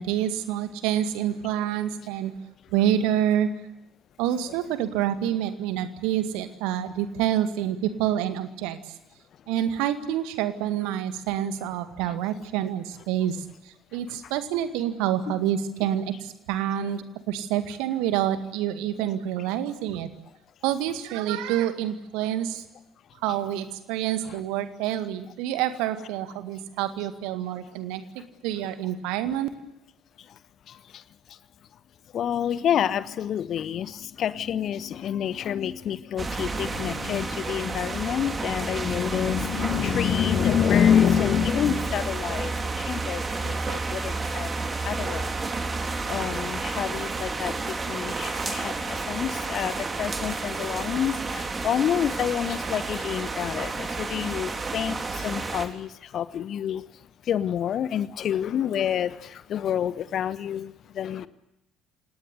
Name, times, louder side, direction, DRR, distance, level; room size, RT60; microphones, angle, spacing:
voice 1, 0.0-2.3 2.7-3.5 4.2-8.8 9.5-13.4 13.9-20.1 20.6-22.6 23.2-29.5, right 11 dB, 60° right, 10 dB, 2.0 m, -27 dB
voice 2, 30.7-31.0 31.3-31.4 32.1-44.5 44.8-45.5 46.1-61.3, left 9 dB, 50° left, 16 dB, 1.2 m, -28 dB
sound 1, 36.2-55.7, right 3 dB, 25° right, 3.4 m, -31 dB
29.0 x 18.5 x 7.9 m, 0.90 s
figure-of-eight pair, 50°, 0 cm